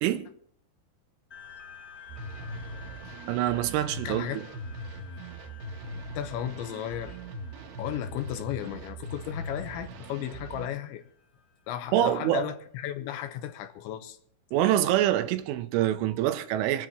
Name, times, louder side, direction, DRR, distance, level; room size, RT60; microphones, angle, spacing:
sound 1, 1.3-12.2, left 7 dB, 45° left, 0.8 m, -52 dB
sound 2, 2.1-10.7, right 1 dB, 70° right, 2.7 m, -40 dB
voice 1, 3.3-4.3 11.9-12.4 14.5-16.9, right 12 dB, 85° right, 3.4 m, -25 dB
voice 2, 4.0-4.4 6.1-7.2 7.8-11.0 11.7-14.2, left 11 dB, 80° left, 3.1 m, -34 dB
27.0 x 10.0 x 3.0 m
omnidirectional pair, 5.5 m